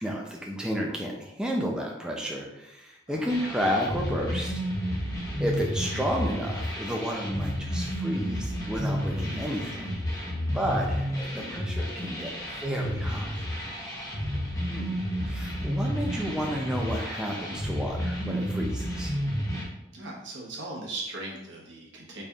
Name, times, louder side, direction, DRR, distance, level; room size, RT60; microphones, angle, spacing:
voice 1, 0.0-4.6 5.0-5.1 5.4-10.0 10.5-13.4 14.7-15.0 15.3-19.2, equal, 5° right, -1 dB, 0.3 m, -32 dB
sound 1, 3.3-19.6, equal, 20° left, 0.7 m, -31 dB
voice 2, 10.5-10.9 17.1-17.6 19.9-22.2, right 2 dB, 85° right, -3 dB, 1.0 m, -39 dB
4.1 x 3.3 x 2.3 m, 0.87 s
head